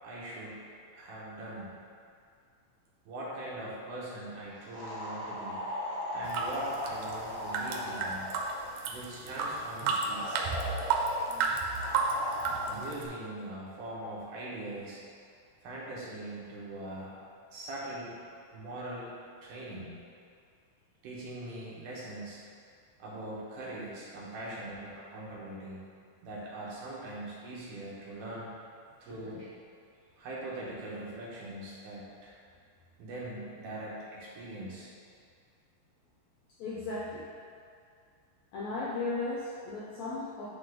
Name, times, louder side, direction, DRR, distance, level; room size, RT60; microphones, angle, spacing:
voice 1, 0.0-1.7 3.1-5.6 6.1-8.3 8.9-10.4 12.6-15.0 15.6-17.1 17.5-18.1 18.5-19.1 19.4-19.9 21.0-22.4 23.0-25.8 26.2-28.5 29.0-29.4 30.2-32.4 33.0-34.9, right 1 dB, 70° right, -6 dB, 2.7 m, -41 dB
sound 1, 4.7-8.7 10.1-11.3 11.8-12.7, left 1 dB, 55° left, 1.1 m, -38 dB
sound 2, 6.2-13.1, right 4 dB, 90° right, 2.4 m, -32 dB
voice 2, 36.6-37.2 38.5-40.5, left 3 dB, 80° left, -5 dB, 1.6 m, -36 dB
9.8 x 3.3 x 3.7 m, 2.3 s
omnidirectional pair, 3.9 m